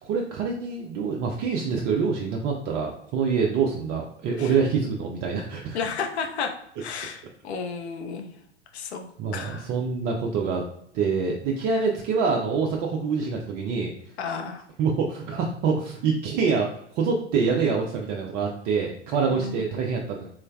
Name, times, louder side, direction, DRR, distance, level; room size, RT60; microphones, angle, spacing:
voice 1, 0.0-5.8 9.2-10.6 10.9-13.9 14.8-16.7 17.0-20.3, right 5 dB, 25° right, 0 dB, 0.4 m, -26 dB
voice 2, 5.7-6.5 6.8-8.3 8.7-9.7 14.2-14.6 19.3-19.6, left 5 dB, 65° left, 3 dB, 0.8 m, -32 dB
3.8 x 3.1 x 2.2 m, 0.75 s
figure-of-eight pair, 95°, 36 cm